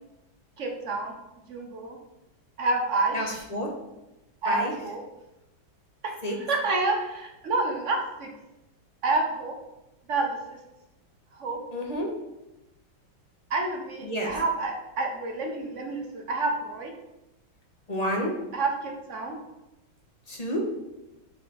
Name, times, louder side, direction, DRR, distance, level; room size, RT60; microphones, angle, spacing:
voice 1, 0.6-1.1 1.5-2.0 2.6-3.4 4.4-5.0 6.0-8.3 9.0-9.5 10.1-10.6 11.4-11.6 13.5-16.9 18.5-19.4, right 3 dB, 45° right, 2 dB, 1.1 m, -28 dB
voice 2, 3.1-3.7 4.4-4.7 6.2-6.3 11.7-12.1 14.0-14.3 17.9-18.3 20.3-20.6, equal, 25° left, 0 dB, 1.1 m, -29 dB
7.4 x 6.2 x 4.2 m, 0.96 s
omnidirectional pair, 2.1 m